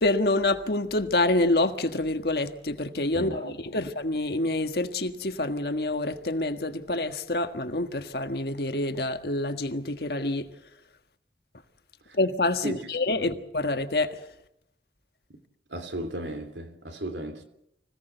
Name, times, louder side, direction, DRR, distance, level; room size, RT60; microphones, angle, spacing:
voice 1, 0.0-10.5 12.1-14.2, left 2 dB, 60° left, 1.6 m, -27 dB
voice 2, 3.1-3.8 12.1-12.2 12.6-12.8 13.2-13.4 15.7-17.4, right 1 dB, 85° right, 2.9 m, -35 dB
25.5 x 17.0 x 8.0 m
head